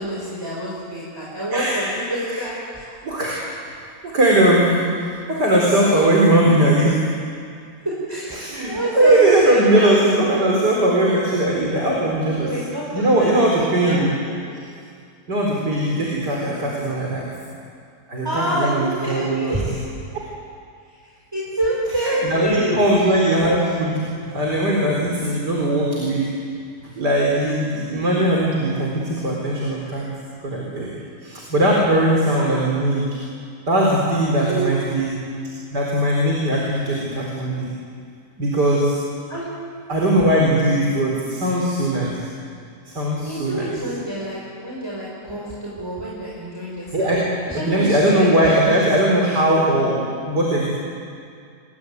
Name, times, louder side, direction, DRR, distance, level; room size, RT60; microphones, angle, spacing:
voice 1, 0.0-2.9 7.8-9.9 12.4-14.4 18.2-19.9 21.3-22.8 32.3-32.5 34.3-34.7 39.3-39.4 43.2-47.1 47.4-48.8, right 1 dB, 15° right, -6 dB, 5.2 m, -27 dB
voice 2, 1.5-1.9 2.3-2.4 3.0-3.4 4.0-4.8 5.3-7.0 8.3-14.1 15.3-17.3 18.1-19.6 22.0-26.3 26.8-30.0 30.4-30.9 31.2-33.0 33.7-35.2 35.7-37.7 38.4-39.0 39.9-42.2 42.8-43.7 46.9-47.3 47.6-50.7, right 1 dB, 90° right, -3 dB, 4.9 m, -19 dB
28.5 x 22.0 x 9.5 m, 2.3 s
omnidirectional pair, 1.7 m